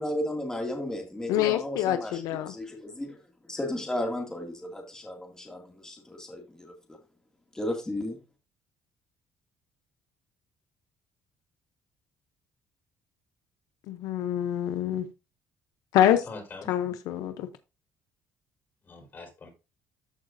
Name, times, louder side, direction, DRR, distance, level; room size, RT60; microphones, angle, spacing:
voice 1, 0.0-3.2 3.5-6.7 7.5-8.2, left 1 dB, 10° left, 2.1 m, -34 dB
voice 2, 1.3-2.5 13.9-15.1 15.9-16.2 16.7-17.5, left 11 dB, 90° left, 0.6 m, -26 dB
voice 3, 16.2-16.9 18.8-19.5, left 3 dB, 35° left, 4.1 m, -44 dB
13.5 x 4.8 x 2.5 m
cardioid pair, 125°, 6 cm